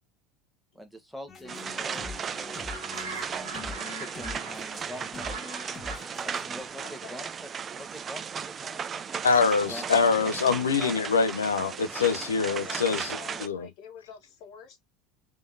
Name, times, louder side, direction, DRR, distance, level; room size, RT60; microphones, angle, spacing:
voice 1, 0.7-2.8 3.5-5.4 6.2-9.2 9.7-9.8 10.8-11.1, equal, ahead, 1.2 m, -45 dB
sound 1, 1.3-6.7, left 4 dB, 30° left, 1.6 m, -43 dB
sound 2, 1.5-13.5, right 7 dB, 30° right, 0.4 m, -36 dB
sound 3, 2.7-6.0, right 5 dB, 70° right, 1.2 m, -41 dB
voice 2, 6.8-7.3 12.5-14.8, left 7 dB, 55° left, 1.8 m, -47 dB
voice 3, 9.2-13.7, left 5 dB, 80° left, 0.7 m, -25 dB
3.6 x 3.3 x 2.6 m
figure-of-eight pair, 75°, 0 cm